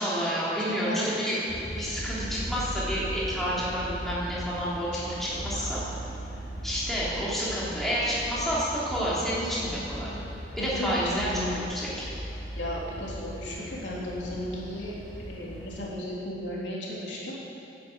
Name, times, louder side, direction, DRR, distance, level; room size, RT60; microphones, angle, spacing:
voice 1, 0.0-1.4 1.8-5.8 6.6-10.1 10.6-12.1, equal, ahead, -8 dB, 3.2 m, -29 dB
voice 2, 0.7-1.1 2.2-2.3 4.9-5.6 10.6-11.5 12.6-14.9 15.3-17.3, left 1 dB, 85° left, -5 dB, 3.5 m, -35 dB
sound 1, 1.5-15.8, equal, 70° left, 3.9 m, -38 dB
11.0 x 10.5 x 8.2 m, 2.7 s
head